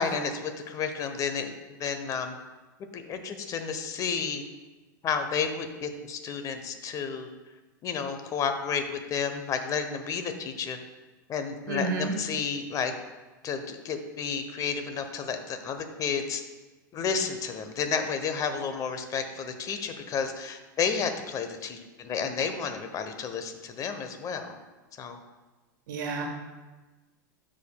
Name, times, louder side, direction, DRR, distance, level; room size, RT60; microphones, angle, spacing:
voice 1, 0.0-1.5 1.8-2.4 2.9-4.4 5.0-7.3 7.8-10.8 11.3-12.9 13.4-16.4 16.9-24.6 25.0-25.2, left 6 dB, 35° left, 7 dB, 0.8 m, -31 dB
voice 2, 11.7-12.1 25.9-26.4, right 3 dB, 80° right, 2 dB, 1.5 m, -30 dB
13.0 x 5.0 x 2.3 m, 1.2 s
hypercardioid pair, 115°, 11 cm